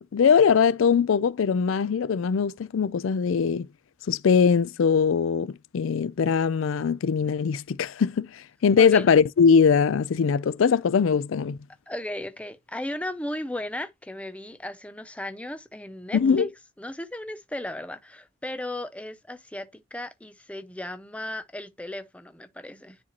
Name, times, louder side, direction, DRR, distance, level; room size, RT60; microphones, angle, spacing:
voice 1, 0.1-3.7 4.1-11.6 16.1-16.5, left 6 dB, 75° left, 0.4 m, -21 dB
voice 2, 8.8-9.1 11.9-16.5 16.8-23.0, left 1 dB, 5° left, 0.5 m, -35 dB
9.9 x 4.3 x 2.9 m
head